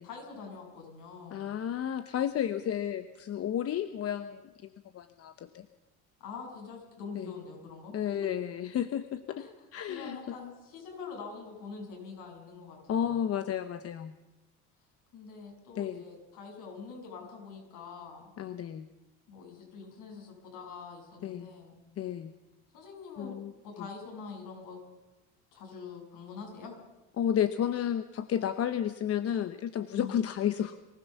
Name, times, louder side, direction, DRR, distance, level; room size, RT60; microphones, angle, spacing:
voice 1, 0.0-1.6 6.2-8.2 9.4-9.5 9.9-13.2 15.1-18.3 19.3-21.8 22.7-23.4 23.6-24.8 25.5-26.8 29.9-30.1, left 5 dB, 65° left, 1 dB, 7.6 m, -45 dB
voice 2, 1.3-4.4 4.9-5.7 7.1-7.3 7.9-10.2 12.9-14.1 15.8-16.0 18.4-18.9 21.2-21.5 22.0-22.3 23.2-23.5 23.8-23.9 27.2-30.8, left 9 dB, 45° left, 11 dB, 1.0 m, -32 dB
23.5 x 15.5 x 7.1 m, 1.1 s
supercardioid pair, 105°, 34 cm